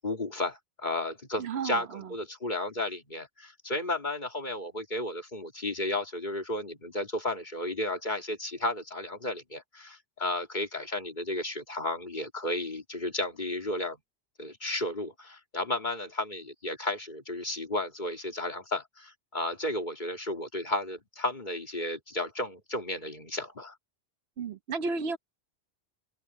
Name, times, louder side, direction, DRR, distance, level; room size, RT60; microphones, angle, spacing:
voice 1, 0.0-14.0 14.4-23.7, left 1 dB, 45° left, 3.0 m, -33 dB
voice 2, 1.4-2.1 24.4-25.2, right 4 dB, 80° right, 1.2 m, -33 dB
open air
omnidirectional pair, 1.1 m